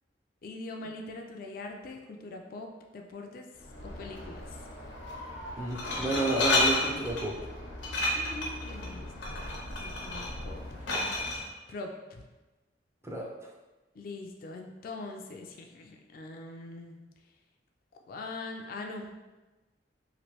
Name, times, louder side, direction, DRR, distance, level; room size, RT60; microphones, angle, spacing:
voice 1, 0.4-3.5 3.8-4.5 8.1-10.9 11.7-12.3 14.0-16.9 18.1-19.1, left 2 dB, 50° left, 3 dB, 0.3 m, -42 dB
Glass, 3.6-11.4, left 2 dB, 85° left, 0.6 m, -32 dB
voice 2, 5.6-7.4 13.0-13.3, right 1 dB, 15° right, -2 dB, 0.4 m, -30 dB
3.0 x 2.5 x 2.9 m, 1.1 s
head